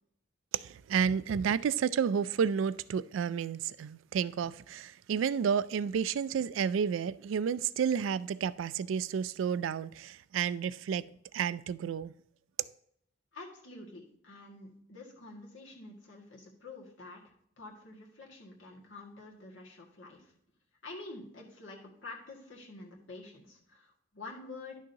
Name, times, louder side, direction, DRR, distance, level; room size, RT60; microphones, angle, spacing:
voice 1, 0.5-11.1 11.3-12.1, right 7 dB, 90° right, 0.3 m, -31 dB
voice 2, 13.3-20.3 20.8-24.8, left 2 dB, 85° left, 1.9 m, -48 dB
11.0 x 6.3 x 2.8 m
head